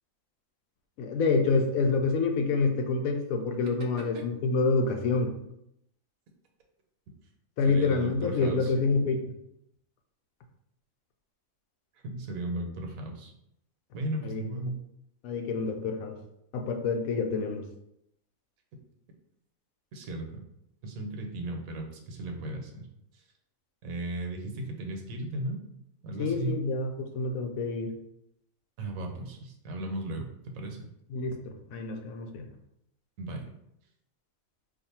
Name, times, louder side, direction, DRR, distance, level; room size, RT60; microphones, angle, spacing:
voice 1, 1.0-5.4 7.6-9.2 14.2-14.4 15.2-16.2 16.5-17.7 26.2-27.9 31.1-32.5, left 4 dB, 85° left, 4 dB, 1.0 m, -27 dB
voice 2, 7.7-8.7 12.0-13.3 13.9-14.8 19.9-20.4 20.8-22.9 23.8-25.6 26.0-26.6 28.8-30.8 33.2-33.5, right 2 dB, 80° right, 3 dB, 1.1 m, -36 dB
2.6 x 2.4 x 4.1 m, 0.79 s
omnidirectional pair, 1.4 m